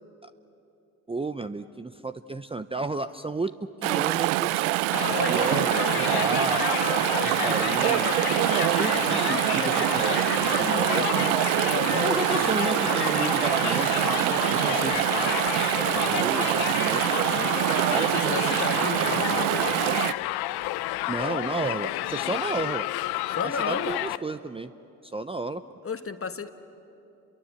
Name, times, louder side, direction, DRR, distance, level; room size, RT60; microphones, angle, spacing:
voice 1, 1.1-4.7 5.2-6.9 7.2-8.4 8.8-11.4 11.9-17.5 17.9-18.4 21.1-22.9 23.4-24.7 25.0-25.6, right 3 dB, 15° right, 11 dB, 0.7 m, -33 dB
Chatter / Stream, 3.8-20.1, right 17 dB, 80° right, 0.6 m, -25 dB
Crowd, 4.9-24.2, left 17 dB, 65° left, 0.7 m, -30 dB
voice 2, 18.1-19.6 23.3-23.9 25.8-26.5, left 5 dB, 35° left, 9 dB, 1.6 m, -33 dB
30.0 x 22.5 x 8.2 m, 2.8 s
hypercardioid pair, 55°, 40 cm